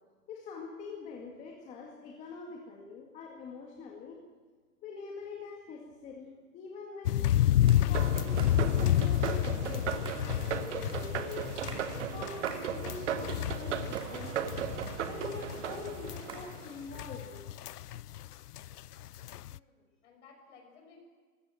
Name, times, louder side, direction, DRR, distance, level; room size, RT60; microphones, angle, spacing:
voice 1, 0.3-4.2 4.8-7.2 7.7-10.0 10.7-11.6 12.1-14.4 15.1-17.8, left 4 dB, 15° left, 0 dB, 1.9 m, -44 dB
sound 1, 7.0-18.3 18.5-19.6, left 12 dB, 70° left, 0.6 m, -30 dB
sound 2, 7.7-7.8 8.4-8.6 9.2-9.4 10.0-10.2 10.9-11.0 11.5-11.9 12.5-12.7 13.1-13.7 14.0-14.1 14.8-15.4 16.3-16.5, right 3 dB, 10° right, 2.4 m, -46 dB
sound 3, 7.9-17.0, right 8 dB, 45° right, 1.5 m, -37 dB
voice 2, 19.4-21.0, left 5 dB, 45° left, 3 dB, 6.4 m, -58 dB
25.0 x 15.5 x 7.7 m, 1.5 s
hypercardioid pair, 150°, 48 cm